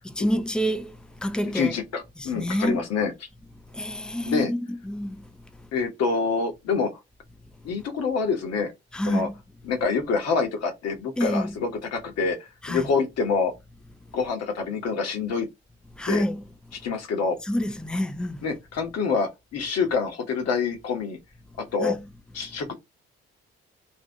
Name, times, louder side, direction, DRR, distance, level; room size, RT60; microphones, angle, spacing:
voice 1, 0.1-1.7 2.2-2.8 3.7-5.7 8.9-9.3 11.2-11.5 12.6-12.9 15.9-16.4 17.4-18.5 21.8-22.0, equal, 5° left, 0.5 m, -28 dB
voice 2, 1.4-3.1 4.3-4.5 5.7-6.9 7.6-8.7 9.1-9.3 9.6-12.4 12.7-13.5 14.1-15.5 16.1-16.2 16.8-17.4 18.4-21.2 21.6-21.9 22.3-22.7, left 5 dB, 55° left, 1.1 m, -26 dB
2.7 x 2.5 x 3.5 m
figure-of-eight pair, 45°, 31 cm